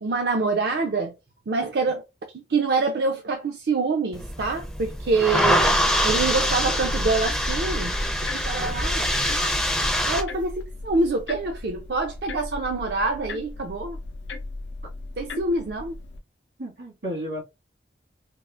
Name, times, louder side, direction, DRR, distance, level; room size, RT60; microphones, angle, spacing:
voice 1, 0.0-1.1 1.5-2.0 2.3-5.8 6.0-7.9 8.3-9.1 10.0-14.0 15.2-16.0, right 3 dB, 65° right, 0.4 m, -25 dB
sound 1, 4.1-10.2, equal, 5° left, 0.4 m, -24 dB
voice 2, 5.8-6.6 16.6-17.4, equal, 85° right, 1.8 m, -35 dB
sound 2, 6.3-16.2, left 3 dB, 85° left, 0.5 m, -38 dB
3.5 x 2.4 x 2.4 m
head